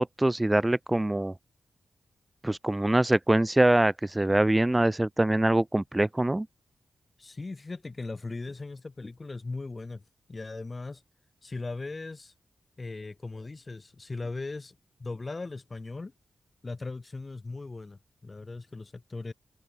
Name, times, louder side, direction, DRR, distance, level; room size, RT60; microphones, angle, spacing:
voice 1, 0.0-1.3 2.4-6.5, right 1 dB, 20° right, 0.5 m, -24 dB
voice 2, 7.2-10.0 10.3-11.0 11.4-12.3 12.8-16.1 16.6-19.3, left 3 dB, 40° left, 6.7 m, -38 dB
cardioid pair, 45°, 0 cm